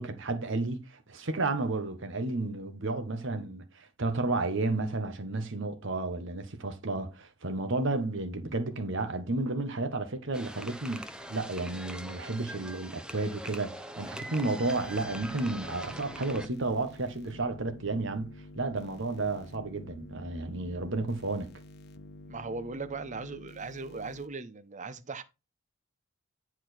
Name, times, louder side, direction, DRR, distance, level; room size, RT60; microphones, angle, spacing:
voice 1, 0.0-21.5, right 2 dB, 65° right, 1.3 m, -32 dB
sound 1, 10.3-16.5, equal, 5° right, 0.7 m, -42 dB
sound 2, 14.6-24.3, left 1 dB, 55° left, 1.0 m, -49 dB
voice 2, 22.3-25.2, right 4 dB, 35° right, 0.8 m, -38 dB
10.0 x 4.5 x 4.4 m
head